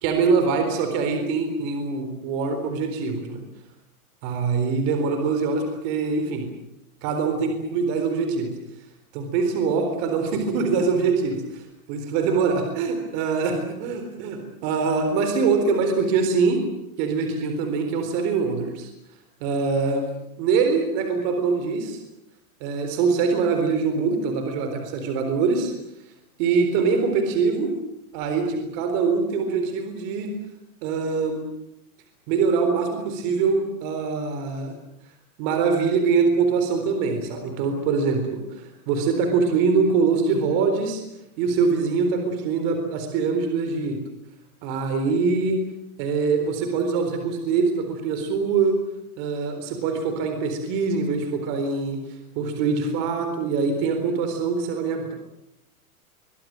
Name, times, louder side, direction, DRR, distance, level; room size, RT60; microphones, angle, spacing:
voice 1, 0.0-3.4 4.2-6.5 7.0-8.5 9.1-11.4 11.9-16.6 17.0-18.9 19.4-20.1 20.4-22.0 22.6-25.7 26.4-27.7 28.1-30.3 30.8-31.4 32.3-34.7 35.4-41.0 41.4-44.0 44.6-45.6 46.0-48.8 49.2-52.0 52.4-55.1, right 5 dB, 30° right, 6 dB, 4.0 m, -23 dB
25.0 x 23.0 x 7.8 m, 0.85 s
supercardioid pair, 175°, 44 cm